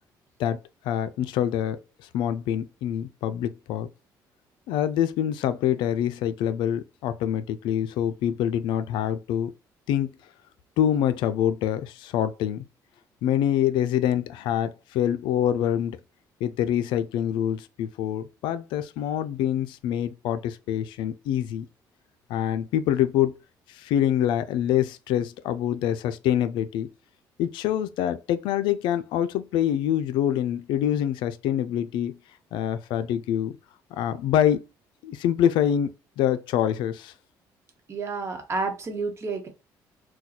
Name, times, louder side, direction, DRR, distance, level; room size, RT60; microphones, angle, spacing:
voice 1, 0.8-1.8 2.1-3.9 4.7-9.5 9.9-10.1 10.8-12.6 13.2-16.0 16.4-21.7 22.3-23.3 23.7-26.9 27.4-32.2 32.5-33.6 33.9-34.6 35.0-37.1, left 10 dB, 85° left, 0.3 m, -25 dB
voice 2, 37.9-39.5, right 3 dB, 35° right, 1.0 m, -30 dB
4.0 x 2.2 x 2.9 m
cardioid pair, 110°, 8 cm